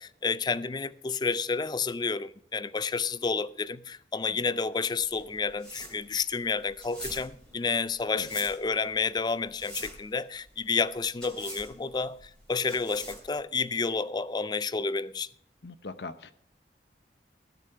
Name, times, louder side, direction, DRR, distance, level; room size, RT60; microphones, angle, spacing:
voice 1, 0.0-15.3, left 4 dB, 25° left, 0.4 m, -30 dB
sound 1, 5.0-13.4, equal, 5° left, 2.9 m, -44 dB
voice 2, 15.6-16.3, left 3 dB, 70° left, 0.8 m, -40 dB
16.0 x 6.9 x 5.6 m
head